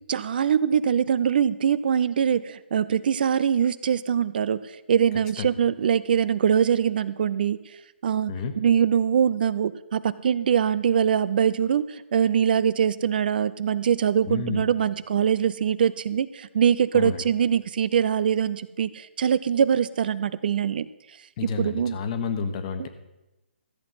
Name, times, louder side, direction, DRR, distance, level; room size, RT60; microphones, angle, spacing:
voice 1, 0.1-7.6 8.0-20.9 21.6-22.0 22.8-22.9, right 8 dB, 50° right, 16 dB, 0.5 m, -23 dB
voice 2, 14.3-14.6 16.9-17.2 21.4-22.9, left 5 dB, 35° left, 8 dB, 1.3 m, -30 dB
13.5 x 7.7 x 5.6 m, 0.99 s
hypercardioid pair, 150°, 6 cm